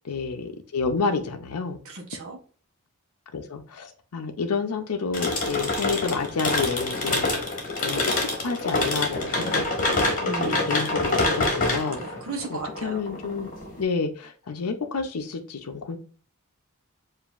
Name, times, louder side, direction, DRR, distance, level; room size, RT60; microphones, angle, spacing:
voice 1, 0.0-1.8 3.3-7.3 7.8-10.1 10.4-12.2 12.5-13.5 13.8-16.0, left 4 dB, 80° left, 5 dB, 0.6 m, -29 dB
voice 2, 1.8-2.4 7.9-8.0 10.2-10.7 12.0-13.0, right 3 dB, 65° right, 1 dB, 0.9 m, -35 dB
sound 1, 5.1-13.8, left 2 dB, 35° left, 1.3 m, -26 dB
7.0 x 2.6 x 2.4 m, 0.42 s
head